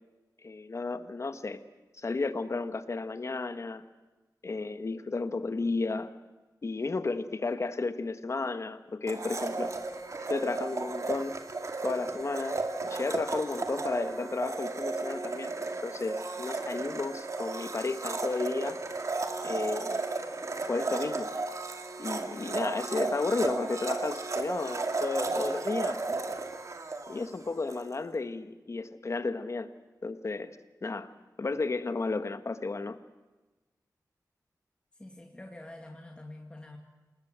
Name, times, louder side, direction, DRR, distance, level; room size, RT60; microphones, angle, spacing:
voice 1, 0.4-1.6 2.0-3.8 4.4-6.1 6.6-9.7 10.3-11.4 11.8-15.5 15.8-18.8 19.4-20.0 20.7-21.3 22.0-26.3 27.1-29.7 30.0-30.6 30.8-31.1 31.4-33.0, left 3 dB, 45° left, 10 dB, 1.5 m, -33 dB
Domestic sounds home sounds, 9.1-27.9, right 3 dB, 50° right, 2.3 m, -34 dB
voice 2, 34.9-36.8, left 1 dB, 15° left, 2 dB, 2.1 m, -46 dB
28.5 x 20.0 x 7.5 m, 1.2 s
wide cardioid pair, 120°, 7 cm